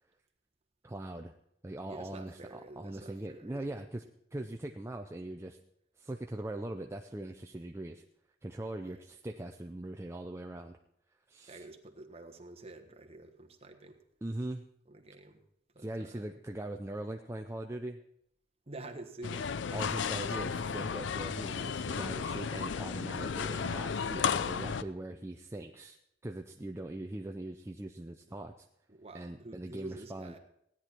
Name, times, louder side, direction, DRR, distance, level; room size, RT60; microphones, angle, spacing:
voice 1, 0.8-1.3 1.6-4.0 4.3-5.6 6.0-8.0 8.4-10.8 11.3-11.6 14.2-14.6 15.8-18.0 19.7-26.0 26.2-28.5 29.1-30.3, right 1 dB, 15° right, 4 dB, 0.5 m, -41 dB
voice 2, 1.9-3.8 8.8-9.0 11.5-14.0 14.9-15.4 15.7-16.2 18.7-20.4 28.3-28.4 28.9-30.4, right 2 dB, 35° right, 4 dB, 1.3 m, -49 dB
sound 1, 19.2-24.8, left 6 dB, 70° left, 0.5 m, -34 dB
16.5 x 9.9 x 4.4 m, 0.77 s
head